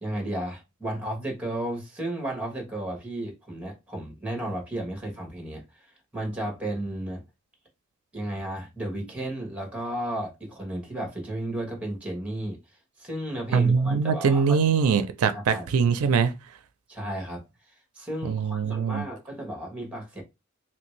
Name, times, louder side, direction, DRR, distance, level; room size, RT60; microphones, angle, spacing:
voice 1, 0.0-5.9 6.1-7.2 8.1-12.6 13.0-14.6 15.5-15.7 16.9-17.4 17.9-20.2, right 1 dB, 5° right, 1.0 m, -33 dB
voice 2, 13.5-16.3 18.2-19.0, right 6 dB, 85° right, 0.4 m, -22 dB
3.1 x 2.5 x 3.1 m
head